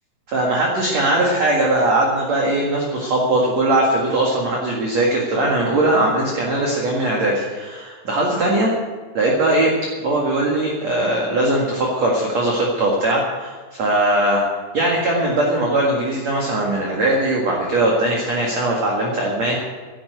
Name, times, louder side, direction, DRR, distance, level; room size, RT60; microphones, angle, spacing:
voice 1, 0.3-8.7 9.1-9.7 10.0-14.4 14.7-19.6, right 1 dB, 50° right, -2 dB, 2.3 m, -20 dB
11.5 x 11.5 x 8.1 m, 1.4 s
omnidirectional pair, 5.6 m